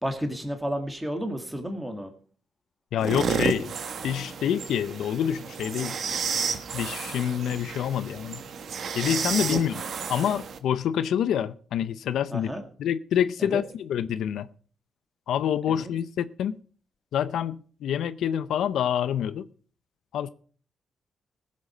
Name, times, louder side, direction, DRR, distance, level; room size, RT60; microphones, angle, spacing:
voice 1, 0.0-2.1 9.4-9.6 12.3-12.6 13.4-13.6 15.7-15.9, equal, 5° right, 2.0 m, -32 dB
voice 2, 2.9-3.7 4.0-6.0 6.7-8.4 8.9-9.8 10.1-12.5 12.8-14.5 15.3-16.6 17.1-19.5 20.1-20.3, left 9 dB, 85° left, 0.5 m, -27 dB
sound 1, 3.0-10.6, right 6 dB, 60° right, 1.3 m, -31 dB
18.0 x 7.5 x 5.0 m
cardioid pair, 130°, 0 cm